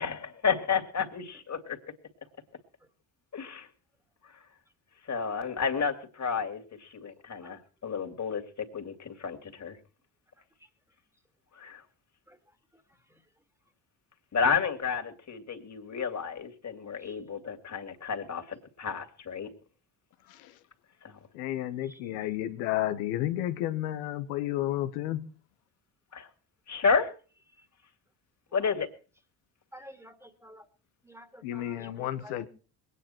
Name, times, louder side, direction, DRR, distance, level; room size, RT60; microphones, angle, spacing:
voice 1, 0.0-1.8 3.3-3.7 4.2-4.4 5.0-9.8 11.5-11.8 14.3-19.5 21.0-21.2 26.1-26.3 26.7-27.1 28.5-28.9, left 5 dB, 35° left, 2.8 m, -31 dB
voice 2, 21.3-25.2 31.4-32.5, left 13 dB, 85° left, 1.3 m, -32 dB
voice 3, 29.7-30.7 31.0-32.4, equal, 5° right, 2.3 m, -51 dB
22.0 x 9.8 x 4.5 m
hypercardioid pair, 60°, 46 cm